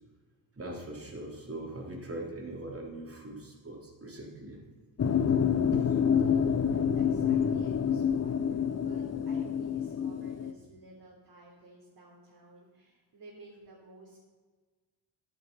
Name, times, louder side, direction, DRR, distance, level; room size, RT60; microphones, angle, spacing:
voice 1, 0.6-4.6 5.7-5.9 6.2-6.3 6.7-8.0, right 2 dB, 30° right, -1 dB, 3.5 m, -41 dB
sound 1, 5.0-10.5, left 7 dB, 30° left, 0.8 m, -27 dB
voice 2, 6.1-14.2, right 2 dB, 50° right, -5 dB, 3.6 m, -53 dB
10.5 x 9.7 x 5.6 m, 1.4 s
supercardioid pair, 60°, 48 cm